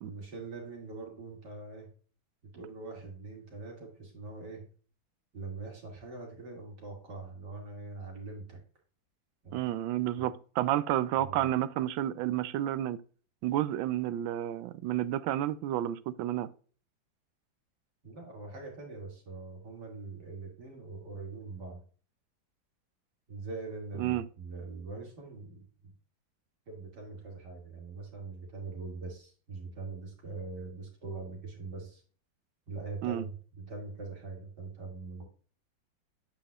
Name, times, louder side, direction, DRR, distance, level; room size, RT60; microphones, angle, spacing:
voice 1, 0.0-1.9 2.5-4.7 5.3-8.6 9.4-9.6 10.2-10.3 11.2-11.5 18.0-21.8 23.3-25.9 26.7-32.0 32.7-35.2, right 3 dB, 60° right, 3.0 m, -43 dB
voice 2, 9.5-13.0 13.4-16.5 24.0-24.2 33.0-33.2, right 13 dB, 85° right, 1.3 m, -30 dB
8.3 x 5.7 x 2.3 m
omnidirectional pair, 2.1 m